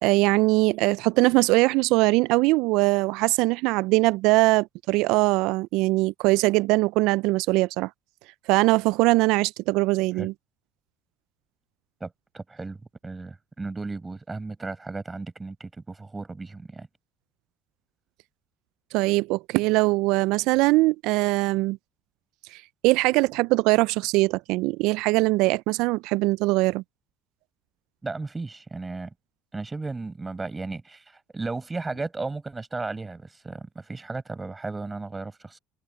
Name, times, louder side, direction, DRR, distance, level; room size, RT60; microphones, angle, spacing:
voice 1, 0.0-7.9 8.5-10.3 18.9-21.8 22.5-26.8, right 22 dB, 70° right, 0.4 m, -22 dB
voice 2, 12.0-12.8 13.0-16.9 28.0-29.1 29.5-35.6, right 3 dB, 20° right, 7.9 m, -35 dB
hypercardioid pair, 65°, 0 cm